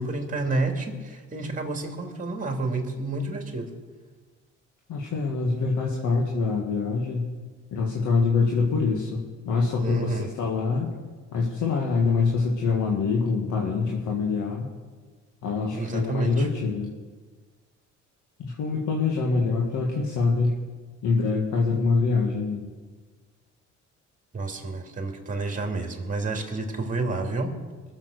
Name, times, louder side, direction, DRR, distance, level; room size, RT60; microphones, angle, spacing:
voice 1, 0.0-3.7 9.8-10.3 15.7-16.5 24.3-27.5, right 3 dB, 25° right, 3 dB, 2.8 m, -29 dB
voice 2, 4.9-7.3 7.7-10.9 11.3-14.7 15.4-16.9 18.4-20.6 21.0-22.7, left 4 dB, 80° left, -1 dB, 1.9 m, -25 dB
22.0 x 7.5 x 6.6 m, 1.4 s
cardioid pair, 90°, 30 cm